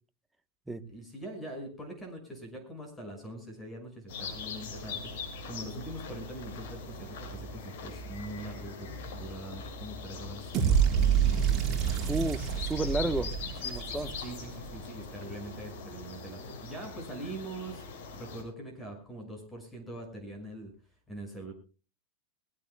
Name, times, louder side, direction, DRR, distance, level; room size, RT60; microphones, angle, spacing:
voice 1, 0.8-12.2 14.2-17.8 18.1-20.7 21.1-21.5, right 1 dB, 10° left, 6.0 m, -43 dB
sound 1, 4.1-18.4, left 4 dB, 65° left, 6.8 m, -42 dB
sound 2, 10.5-14.7, right 8 dB, 30° right, 4.4 m, -27 dB
voice 2, 12.0-13.3 13.6-14.2, right 2 dB, 5° right, 1.0 m, -32 dB
22.5 x 17.0 x 2.2 m
supercardioid pair, 145°, 0 cm